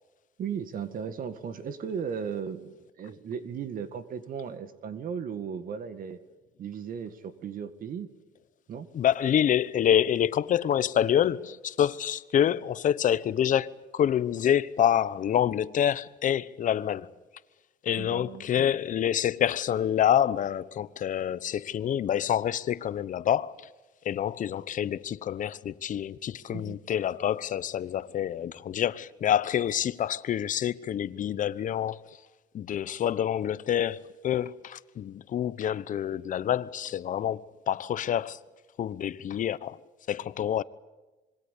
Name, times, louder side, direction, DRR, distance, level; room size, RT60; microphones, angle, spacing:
voice 1, 0.4-6.2 6.6-8.1 8.7-8.9 18.0-18.7 26.5-26.8, right 7 dB, 55° right, 1.9 m, -36 dB
voice 2, 8.9-17.1 17.8-23.7 24.0-32.2 32.5-38.4 38.8-39.8 40.1-40.6, left 10 dB, 50° left, 1.0 m, -27 dB
26.5 x 22.0 x 8.4 m
cardioid pair, 110°, 17 cm